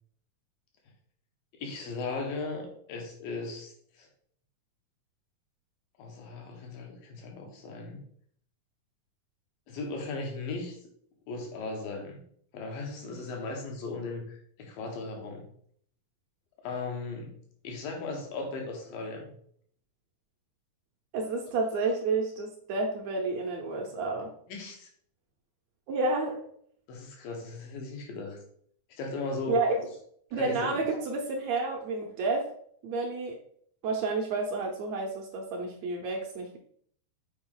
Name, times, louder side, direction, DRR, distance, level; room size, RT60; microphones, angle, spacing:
voice 1, 1.6-4.1 6.0-8.0 9.7-10.8 11.3-12.2 12.5-14.2 14.6-15.5 16.6-17.3 17.6-19.3 24.5-24.9 26.9-28.4 28.9-29.9 30.4-30.7, left 3 dB, 85° left, 1 dB, 3.1 m, -37 dB
voice 2, 21.1-24.3 25.9-26.3 29.5-29.8 30.3-32.5 32.8-33.4 33.8-36.6, right 3 dB, 75° right, 2 dB, 1.6 m, -30 dB
7.0 x 4.8 x 3.8 m, 0.63 s
omnidirectional pair, 3.9 m